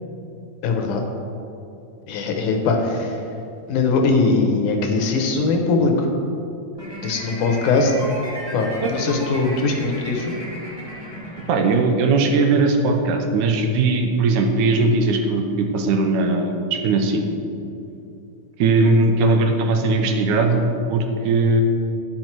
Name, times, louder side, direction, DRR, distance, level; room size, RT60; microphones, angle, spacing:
voice 1, 0.6-1.0 2.1-3.1 3.7-6.1 7.0-7.9 8.5-10.3, left 3 dB, 80° left, 3 dB, 2.3 m, -20 dB
sound 1, 6.7-12.0, equal, 35° right, 0.4 m, -35 dB
voice 2, 11.5-17.2 18.6-21.6, right 3 dB, 75° right, 3 dB, 2.1 m, -19 dB
10.5 x 6.0 x 4.5 m, 2.7 s
omnidirectional pair, 3.7 m